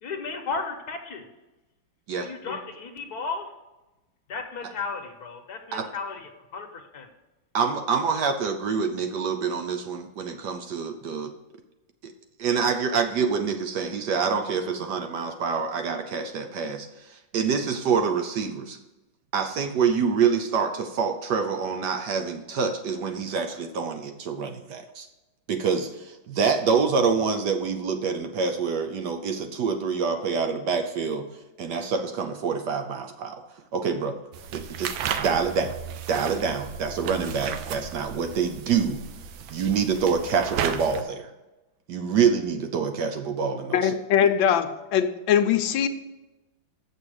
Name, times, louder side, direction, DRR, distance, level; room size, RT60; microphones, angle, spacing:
voice 1, 0.0-1.3 2.2-3.5 4.3-7.1, left 4 dB, 60° left, 5 dB, 1.3 m, -34 dB
voice 2, 7.5-11.3 12.0-12.1 12.4-16.9 17.3-18.8 19.3-25.1 25.5-31.3 31.6-33.4 33.7-34.2 34.5-35.8 36.1-39.0 39.5-41.3 41.9-43.9, right 6 dB, 65° right, 6 dB, 1.2 m, -26 dB
sound 1, 34.3-41.0, right 8 dB, 80° right, 1.4 m, -34 dB
voice 3, 43.7-45.9, left 9 dB, 75° left, 8 dB, 1.3 m, -22 dB
7.3 x 6.8 x 6.3 m, 1.1 s
omnidirectional pair, 2.2 m